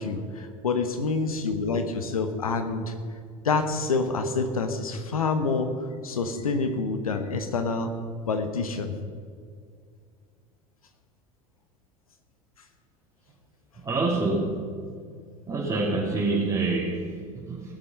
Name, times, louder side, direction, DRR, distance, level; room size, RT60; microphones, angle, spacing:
voice 1, 0.0-2.9 3.4-5.7 6.0-7.9 8.3-8.9, left 4 dB, 85° left, 7 dB, 1.2 m, -27 dB
voice 2, 13.8-14.7 15.5-17.8, right 3 dB, 20° right, -6 dB, 3.2 m, -27 dB
18.5 x 7.9 x 5.7 m, 2.1 s
hypercardioid pair, 75°, 18 cm